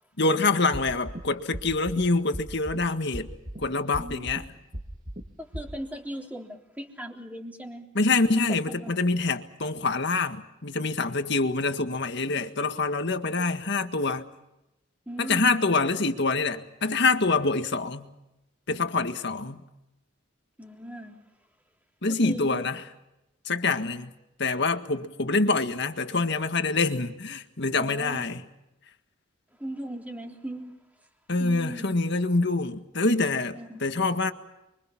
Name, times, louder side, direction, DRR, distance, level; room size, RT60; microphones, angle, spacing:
voice 1, 0.2-3.3 3.6-4.4 8.0-14.3 15.2-18.1 18.7-19.6 22.0-22.8 23.5-24.1 24.4-28.4 31.3-34.3, left 3 dB, 60° left, 1.8 m, -26 dB
sound 1, 0.7-1.2 1.5-2.0 2.3-2.8 3.1-3.6 3.9-4.4 4.7-5.2 5.5-5.6, equal, 40° right, 2.7 m, -36 dB
voice 2, 4.0-4.5 5.4-7.9 8.8-9.0 15.0-15.6 20.6-21.2 22.1-22.6 27.7-28.2 29.6-30.8 31.4-31.9 33.5-33.8, right 1 dB, 10° right, 3.5 m, -38 dB
30.0 x 24.0 x 5.9 m
head